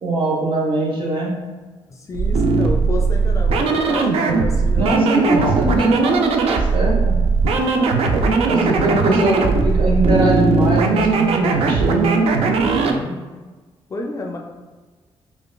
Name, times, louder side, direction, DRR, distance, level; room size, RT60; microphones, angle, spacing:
voice 1, 0.0-1.3 4.7-7.2 8.5-12.2, right 1 dB, 55° right, -4 dB, 1.1 m, -21 dB
voice 2, 1.9-5.4 12.7-13.2 13.9-14.4, left 2 dB, 30° left, 1 dB, 0.4 m, -31 dB
sound 1, 2.1-13.0, right 4 dB, 80° right, 0.4 m, -18 dB
sound 2, 5.4-5.5 6.1-6.2 6.7-7.7 8.2-9.3 9.7-10.7 11.0-11.2, right 1 dB, 10° right, 0.6 m, -31 dB
5.0 x 2.4 x 2.2 m, 1.3 s
cardioid pair, 120°, 10 cm